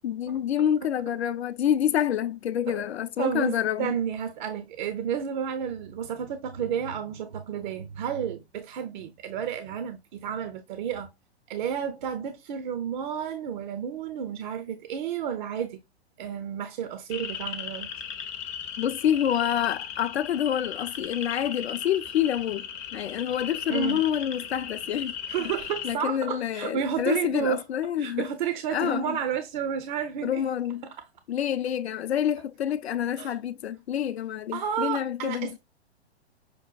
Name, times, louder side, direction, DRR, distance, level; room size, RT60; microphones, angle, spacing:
voice 1, 0.0-3.9 18.8-25.1 25.8-28.3 28.7-29.2 30.2-30.8 31.3-35.6, left 10 dB, 70° left, 0.5 m, -27 dB
voice 2, 3.2-11.1 11.5-15.8 16.2-17.9 23.7-24.0 25.3-27.6 28.0-30.4 30.8-31.0 33.2-33.4 34.5-35.6, right 8 dB, 45° right, 0.5 m, -31 dB
sound 1, 17.1-25.9, left 8 dB, 20° left, 0.5 m, -37 dB
6.0 x 2.2 x 2.3 m
figure-of-eight pair, 115°, 33 cm